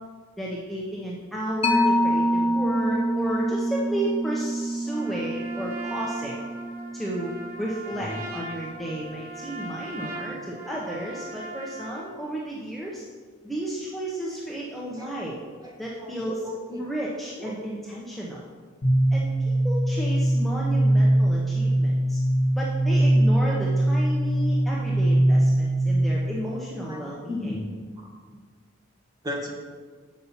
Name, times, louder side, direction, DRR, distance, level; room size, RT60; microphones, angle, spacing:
voice 1, 0.4-6.4 6.9-7.3 7.6-13.0 13.4-15.4 15.8-16.4 16.8-18.4 19.1-19.3 19.6-22.2 22.5-27.5, right 1 dB, ahead, -5 dB, 0.8 m, -33 dB
Mallet percussion, 1.6-8.7, equal, 30° left, 0.5 m, -27 dB
Trumpet, 4.9-12.1, right 1 dB, 85° right, 2.5 m, -39 dB
voice 2, 7.9-8.2 15.0-15.1 15.6-15.7 16.0-16.9 17.4-17.6 26.9-27.7 28.0-28.1 29.2-29.5, left 1 dB, 20° right, 0 dB, 1.2 m, -35 dB
sound 1, 18.8-26.4, right 1 dB, 55° left, 1.1 m, -21 dB
7.3 x 5.5 x 5.6 m, 1.5 s
head